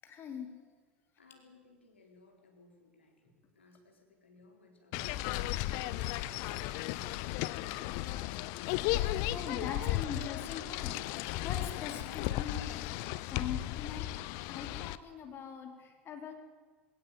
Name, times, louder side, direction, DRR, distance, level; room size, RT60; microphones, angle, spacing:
voice 1, 0.0-0.6 4.9-5.5 9.3-12.9 13.3-16.4, left 6 dB, 40° left, 5 dB, 4.2 m, -43 dB
voice 2, 1.2-7.7, left 2 dB, 85° left, 2 dB, 4.1 m, -60 dB
sound 1, 4.9-15.0, left 16 dB, 55° left, 0.8 m, -35 dB
19.0 x 18.0 x 9.2 m, 1.4 s
figure-of-eight pair, 75°, 6 cm